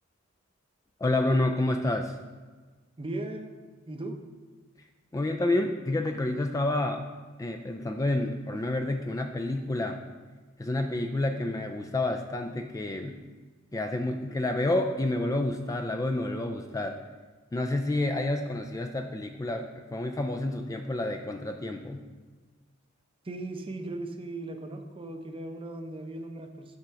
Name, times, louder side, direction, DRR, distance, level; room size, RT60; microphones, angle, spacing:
voice 1, 1.0-2.2 5.1-7.0 7.4-10.0 10.6-13.2 13.7-17.0 17.5-22.0, left 2 dB, 15° left, 5 dB, 0.3 m, -29 dB
voice 2, 3.0-3.5 3.9-4.2 23.2-26.8, right 2 dB, 25° right, 5 dB, 0.6 m, -37 dB
7.7 x 3.9 x 5.7 m, 1.4 s
head